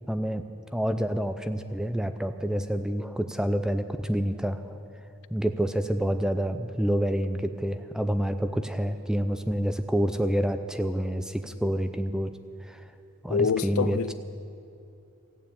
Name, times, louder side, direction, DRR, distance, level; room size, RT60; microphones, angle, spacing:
voice 1, 0.1-0.4 0.7-4.8 5.3-12.3 12.6-12.9 13.2-14.1, equal, 5° right, 0.4 m, -28 dB
voice 2, 13.3-14.1, left 5 dB, 75° left, 0.5 m, -26 dB
14.5 x 9.2 x 8.7 m
head